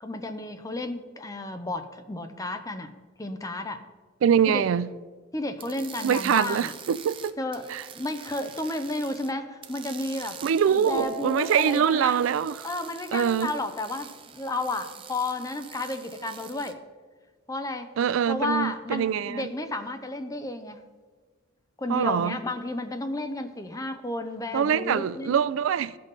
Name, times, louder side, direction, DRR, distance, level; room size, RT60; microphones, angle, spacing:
voice 1, 0.0-2.9 3.2-3.8 4.5-4.7 5.3-6.7 7.4-10.4 10.7-12.2 12.6-16.8 17.5-17.9 18.3-20.8 21.8-25.4, left 2 dB, 15° left, 0.6 m, -32 dB
voice 2, 4.2-4.9 6.0-7.3 7.7-7.8 10.4-12.7 13.1-13.5 18.0-19.5 21.9-22.4 24.5-26.0, right 8 dB, 80° right, 0.3 m, -24 dB
sound 1, 5.6-9.3 9.6-16.7, right 8 dB, 25° right, 0.5 m, -45 dB
Keyboard (musical), 10.8-13.3, right 1 dB, 75° left, 1.1 m, -42 dB
15.0 x 5.5 x 4.0 m
head